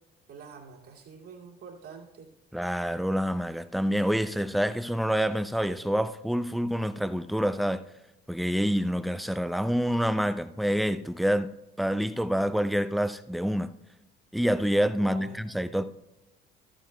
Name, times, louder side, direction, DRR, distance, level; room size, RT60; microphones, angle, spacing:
voice 1, 0.3-2.3 15.0-15.4 15.6-15.8, right 5 dB, 50° right, 2.5 m, -46 dB
voice 2, 2.5-7.8 8.3-11.5 11.8-13.7 14.3-15.8, equal, ahead, 0.4 m, -27 dB
13.5 x 9.0 x 2.3 m
figure-of-eight pair, 50°, 30 cm